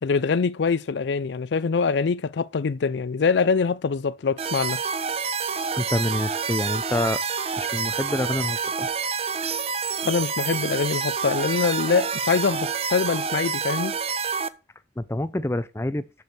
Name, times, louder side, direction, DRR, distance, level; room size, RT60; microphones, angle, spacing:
voice 1, 0.0-4.8 10.0-14.0, left 5 dB, 85° left, 0.4 m, -24 dB
sound 1, 4.4-14.5, right 5 dB, 35° right, 0.5 m, -28 dB
voice 2, 5.7-7.2 7.6-8.9 15.0-16.0, left 1 dB, 15° left, 0.5 m, -27 dB
7.0 x 6.3 x 6.4 m
head